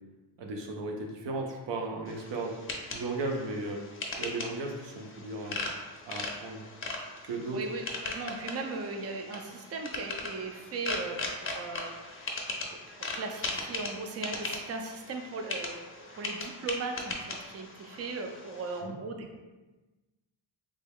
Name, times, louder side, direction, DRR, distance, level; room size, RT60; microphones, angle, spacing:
voice 1, 0.4-2.6 2.9-3.9 4.2-5.6 6.1-6.6 7.2-7.6 18.8-18.9, right 2 dB, 70° right, 1 dB, 0.7 m, -35 dB
sound 1, 2.1-18.8, left 2 dB, 30° left, 0.5 m, -39 dB
voice 2, 7.5-12.1 12.9-15.8 16.2-19.3, right 3 dB, 35° right, 4 dB, 0.4 m, -38 dB
3.3 x 2.2 x 3.5 m, 1.2 s
cardioid pair, 100°, 44 cm